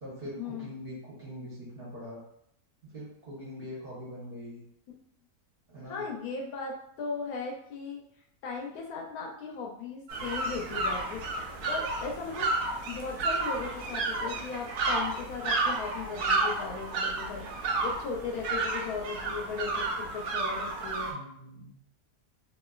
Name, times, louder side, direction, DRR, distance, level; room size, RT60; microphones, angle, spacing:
voice 1, 0.0-2.2 2.9-4.6 5.7-6.0 21.1-21.8, equal, 40° right, -7 dB, 1.1 m, -42 dB
voice 2, 5.9-8.0 8.4-11.4 11.6-12.5 12.9-17.5 17.8-21.2, left 4 dB, 75° left, 0 dB, 1.0 m, -37 dB
sound 1, 10.1-21.1, right 3 dB, 85° right, 1.1 m, -31 dB
2.9 x 2.5 x 2.3 m, 0.70 s
omnidirectional pair, 1.6 m